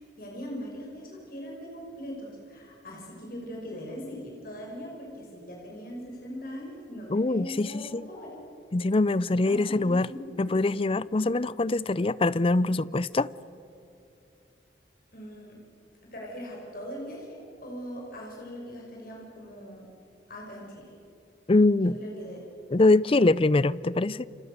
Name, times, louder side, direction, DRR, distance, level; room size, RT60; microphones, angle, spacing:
voice 1, 0.0-8.4 9.4-10.5 15.1-15.6 16.0-19.8 20.3-20.9 21.7-22.4, equal, 55° left, 5.7 m, -40 dB
voice 2, 7.1-8.1 8.7-10.1 10.4-13.3 21.5-22.0 22.7-24.3, left 2 dB, 30° left, 0.5 m, -23 dB
30.0 x 26.5 x 6.7 m
head